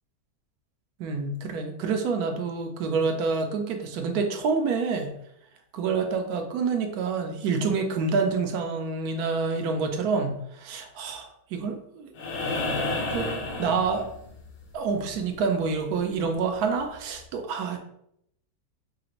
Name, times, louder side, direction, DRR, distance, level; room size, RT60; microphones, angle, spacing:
voice 1, 1.0-5.1 5.7-12.1 13.1-13.3 13.6-14.1 14.7-17.8, right 4 dB, 70° right, 4 dB, 1.0 m, -27 dB
sound 1, 12.2-14.5 16.3-16.4, left 2 dB, 80° left, 1.4 m, -30 dB
4.8 x 2.5 x 2.9 m, 0.74 s
omnidirectional pair, 1.9 m